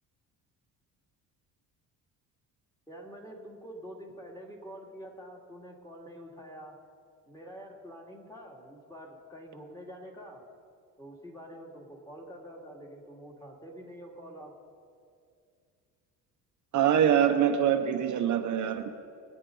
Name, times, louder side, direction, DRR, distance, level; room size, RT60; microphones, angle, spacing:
voice 1, 2.9-6.8 7.3-10.4 11.0-14.6, equal, 10° left, -1 dB, 2.4 m, -46 dB
voice 2, 16.7-19.0, right 9 dB, 60° right, 5 dB, 1.0 m, -24 dB
23.0 x 9.2 x 3.9 m, 2.3 s
cardioid pair, 100°, 34 cm